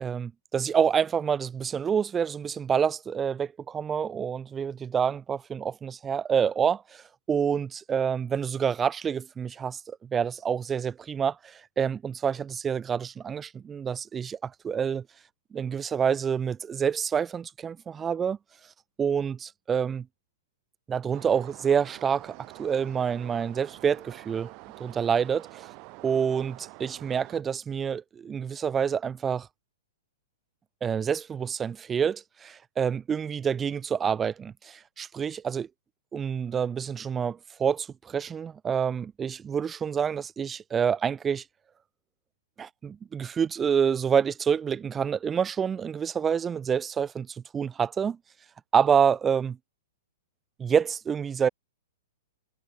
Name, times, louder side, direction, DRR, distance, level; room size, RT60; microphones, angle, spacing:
voice 1, 0.0-7.0 7.3-15.0 15.5-18.4 19.0-20.1 20.9-24.5 24.8-25.7 26.0-29.5 30.8-35.7 36.1-41.4 42.6-47.3 47.5-48.2 48.7-49.6 50.6-51.5, right 7 dB, 15° right, 0.6 m, -27 dB
sound 1, 21.1-27.4, right 30 dB, 40° right, 3.4 m, -47 dB
hypercardioid pair, 135°, 0 cm